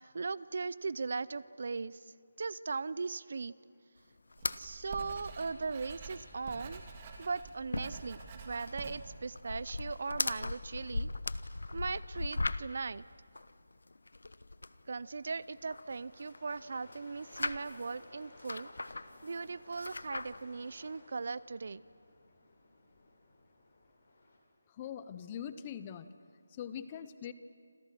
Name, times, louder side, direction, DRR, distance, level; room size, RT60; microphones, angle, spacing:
voice 1, 0.0-3.5 4.6-6.8 7.2-8.2 8.4-11.1 11.7-13.0 14.9-18.7 19.2-21.8, right 4 dB, 50° right, 19 dB, 0.5 m, -38 dB
sound 1, 4.3-4.6 4.9-5.0 5.3-5.4 5.8-5.9 6.2-6.8 7.1-12.9 13.4-14.8 15.3-16.6 16.9-17.9 18.4-19.4 19.7-20.4, left 2 dB, 85° left, 1.0 m, -38 dB
Writing, 4.4-10.0, right 5 dB, 25° right, 2.6 m, -48 dB
sound 2, 14.6-24.4, left 2 dB, 45° left, 6.5 m, -59 dB
voice 2, 24.7-26.1 26.5-27.3, left 9 dB, 20° left, 12 dB, 0.8 m, -42 dB
27.5 x 27.5 x 6.1 m, 2.2 s
figure-of-eight pair, 170°, 0 cm